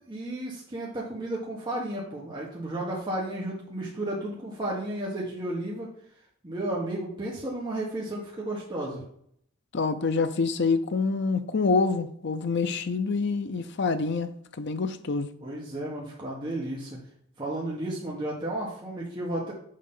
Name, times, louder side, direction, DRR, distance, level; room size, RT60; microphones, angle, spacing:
voice 1, 0.1-5.9 6.4-9.0 15.4-17.0 17.4-19.5, right 1 dB, 20° right, 1.3 m, -33 dB
voice 2, 9.7-14.3 14.6-15.3, left 4 dB, 55° left, 0.5 m, -26 dB
6.5 x 5.1 x 3.8 m
head